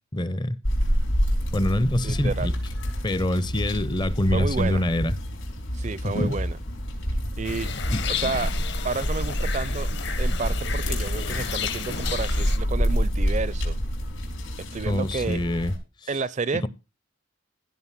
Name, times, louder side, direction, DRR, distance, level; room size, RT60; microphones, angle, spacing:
voice 1, 0.1-0.6 1.5-2.5 3.0-5.1 6.0-6.3 7.9-8.0 14.9-15.7 16.6-16.7, left 1 dB, 20° left, 0.5 m, -25 dB
sound 1, 0.6-15.8, equal, 80° left, 5.1 m, -28 dB
voice 2, 2.0-2.5 4.3-4.9 5.7-6.6 7.4-7.7 8.1-8.5 8.8-9.9 10.2-13.8 14.7-15.4 16.1-16.7, right 4 dB, 35° right, 0.5 m, -30 dB
sound 2, 7.4-12.6, left 6 dB, 55° left, 1.1 m, -33 dB
16.0 x 5.3 x 5.7 m
head